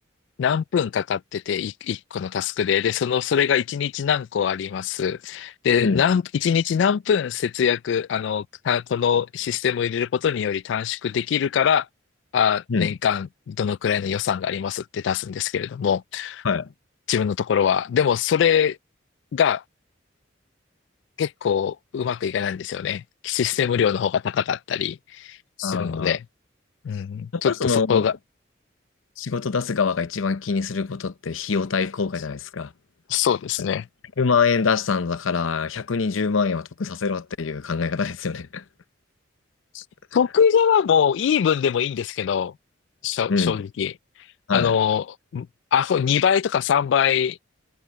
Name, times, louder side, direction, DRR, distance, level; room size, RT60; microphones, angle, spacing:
voice 1, 0.4-11.9 12.3-16.4 17.1-18.8 19.3-19.6 21.2-26.2 26.8-28.1 33.1-33.9 39.7-39.8 40.1-42.5 43.0-43.9 44.5-45.0 45.3-45.5 45.7-47.4, left 8 dB, 65° left, 0.3 m, -23 dB
voice 2, 25.6-26.2 27.3-28.1 29.2-32.7 34.2-38.6 43.3-43.6 44.5-44.8, left 5 dB, 90° left, 0.7 m, -24 dB
head